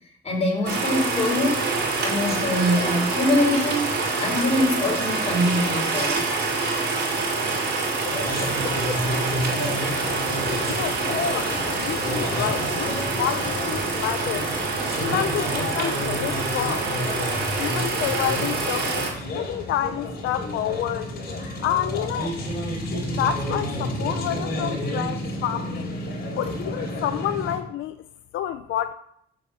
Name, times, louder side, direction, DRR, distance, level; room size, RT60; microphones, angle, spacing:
voice 1, 0.2-1.7 2.0-3.9 4.2-6.4, left 1 dB, 30° left, 0 dB, 4.2 m, -23 dB
sound 1, 0.6-19.1, right 3 dB, 60° right, 5.3 m, -26 dB
sound 2, 8.0-27.6, left 1 dB, 55° left, 3.8 m, -30 dB
voice 2, 10.7-14.5 15.0-16.9 17.6-21.1 21.6-22.4 23.1-25.9 26.4-28.0 28.3-28.9, left 11 dB, 85° left, 11 dB, 0.6 m, -29 dB
7.5 x 7.1 x 7.7 m, 0.71 s
cardioid pair, 90°, 20 cm